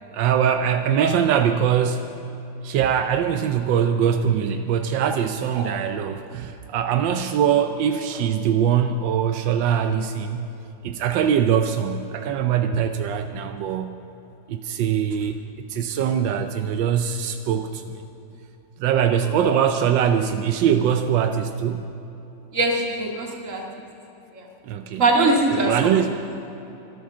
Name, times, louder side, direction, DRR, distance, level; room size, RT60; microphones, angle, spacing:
voice 1, 0.1-2.1 2.6-10.5 10.8-14.0 14.5-18.0 18.8-21.8 24.6-25.0 25.5-26.1, right 8 dB, 85° right, 7 dB, 1.4 m, -22 dB
voice 2, 22.5-23.6 24.3-24.4 25.0-26.0, right 2 dB, 45° right, 0 dB, 2.4 m, -22 dB
25.0 x 9.4 x 6.1 m, 3.0 s
omnidirectional pair, 2.0 m